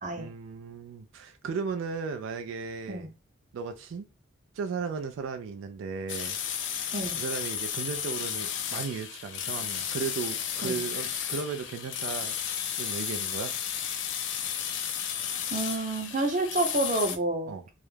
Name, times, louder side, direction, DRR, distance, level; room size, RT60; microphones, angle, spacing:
voice 1, 0.1-3.1 3.5-4.1 4.5-6.4 7.2-13.5 17.5-17.7, right 5 dB, 85° right, 0.3 m, -36 dB
sound 1, 6.1-17.2, left 9 dB, 70° left, 0.4 m, -33 dB
voice 2, 15.5-17.7, right 2 dB, 40° right, 0.6 m, -29 dB
2.3 x 2.0 x 3.1 m
head